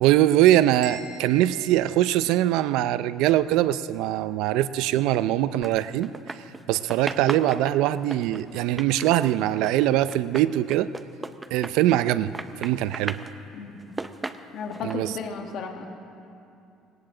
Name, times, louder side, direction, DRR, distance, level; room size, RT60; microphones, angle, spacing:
voice 1, 0.0-6.1 6.7-10.9 11.5-12.3 12.6-13.2 14.8-15.1, right 13 dB, 75° right, 15 dB, 0.4 m, -22 dB
sound 1, 0.8-2.8, right 5 dB, 55° right, 2.5 m, -43 dB
sound 2, 5.6-6.6 6.9-12.1 12.3-13.3 13.8-14.9, right 3 dB, 15° right, 0.5 m, -36 dB
voice 2, 14.5-15.9, left 5 dB, 55° left, 3 dB, 1.6 m, -34 dB
19.5 x 18.0 x 3.9 m, 2.7 s
cardioid pair, 150°, 0 cm